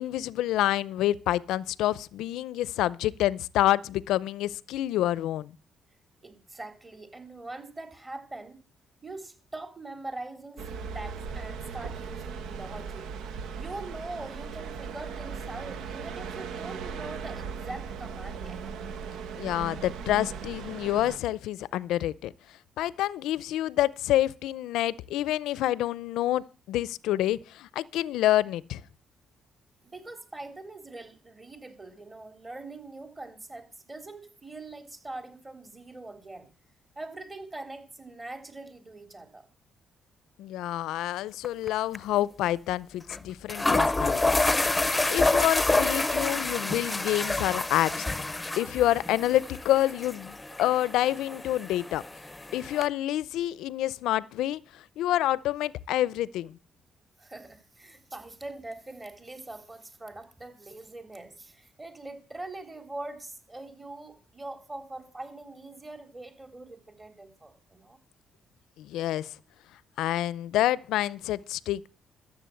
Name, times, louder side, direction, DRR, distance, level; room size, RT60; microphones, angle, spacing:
voice 1, 0.0-5.5 19.4-22.3 22.8-28.8 40.4-44.5 44.8-48.1 48.6-52.0 52.5-56.6 68.8-69.3 70.0-71.9, left 14 dB, 90° left, 0.5 m, -28 dB
voice 2, 6.2-8.6 9.0-13.0 13.6-18.6 29.8-36.5 37.0-39.4 57.2-68.0, right 2 dB, 25° right, 3.6 m, -43 dB
sound 1, 10.6-21.2, right 6 dB, 80° right, 1.2 m, -38 dB
sound 2, 41.4-41.7 41.9-42.0 43.1-43.2 43.5-52.9, left 2 dB, 15° left, 0.8 m, -28 dB
13.5 x 7.5 x 7.8 m
cardioid pair, 90°, 0 cm